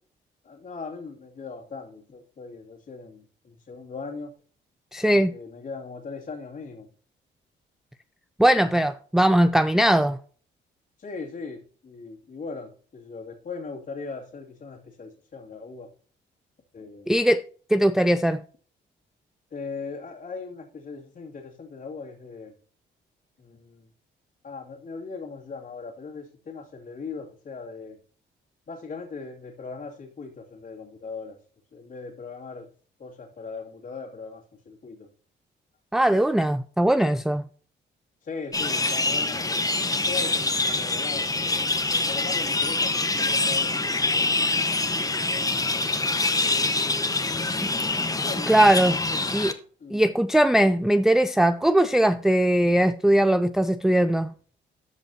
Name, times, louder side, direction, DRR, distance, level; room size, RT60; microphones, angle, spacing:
voice 1, 0.4-4.3 5.1-6.9 11.0-15.9 16.7-17.1 19.5-22.5 23.4-23.9 24.4-28.0 28.7-31.4 31.7-32.7 33.0-35.1 38.2-44.5 44.8-46.3 47.1-47.5 48.2-48.5 48.9-49.3 49.8-50.1, left 4 dB, 45° left, 2.6 m, -39 dB
voice 2, 4.9-5.3 8.4-10.2 17.1-17.4 17.7-18.4 35.9-37.4 48.5-49.0 49.3-49.5 49.9-54.3, right 1 dB, ahead, 0.4 m, -20 dB
sound 1, 38.5-49.5, left 3 dB, 15° left, 1.2 m, -25 dB
14.0 x 5.2 x 2.8 m
cardioid pair, 90°, 20 cm